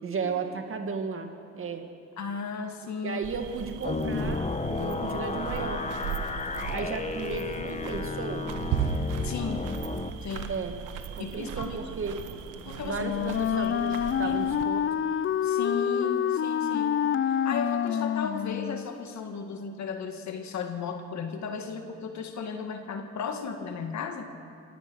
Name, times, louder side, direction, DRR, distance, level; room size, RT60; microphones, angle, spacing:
voice 1, 0.0-1.8 3.0-5.8 6.7-8.5 10.5-10.8 11.2-12.4 12.8-14.9, right 5 dB, 45° right, 6 dB, 2.1 m, -34 dB
voice 2, 2.2-3.2 9.2-9.7 10.2-10.6 11.2-11.8 12.7-13.1 13.5-13.9 14.2-14.6 15.4-17.0 17.3-24.3, left 5 dB, 65° left, 5 dB, 1.9 m, -35 dB
sound 1, 3.2-14.6, right 7 dB, 90° right, 1.3 m, -37 dB
sound 2, 3.8-10.1, left 3 dB, 20° left, 1.2 m, -32 dB
Wind instrument woodwind instrument, 12.9-18.9, left 9 dB, 45° left, 0.5 m, -27 dB
26.0 x 17.5 x 6.3 m, 2.5 s
cardioid pair, 90°, 30 cm